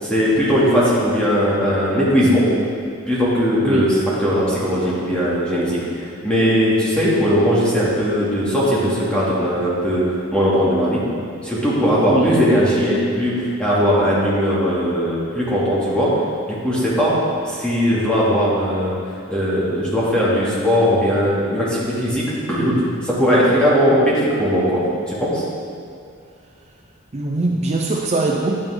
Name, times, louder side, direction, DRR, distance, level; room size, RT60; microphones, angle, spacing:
voice 1, 0.0-2.5 3.1-10.0 10.3-11.0 11.4-16.1 16.4-17.2 17.4-19.0 19.3-25.4, equal, 5° left, -8 dB, 2.4 m, -19 dB
voice 2, 12.0-12.3 23.5-23.6 27.1-28.6, right 2 dB, 30° right, 0 dB, 0.5 m, -21 dB
10.5 x 9.1 x 3.8 m, 2.3 s
head